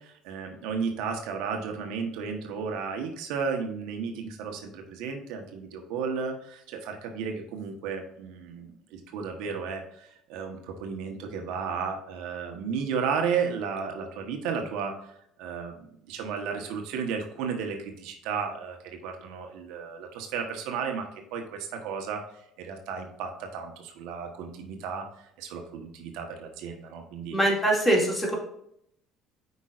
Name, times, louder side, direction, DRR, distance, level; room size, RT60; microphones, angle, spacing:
voice 1, 0.0-27.4, right 6 dB, 80° right, 3 dB, 1.2 m, -33 dB
voice 2, 27.3-28.4, right 1 dB, 10° left, -1 dB, 2.4 m, -23 dB
8.2 x 5.4 x 2.5 m, 0.73 s
supercardioid pair, 100°, 0 cm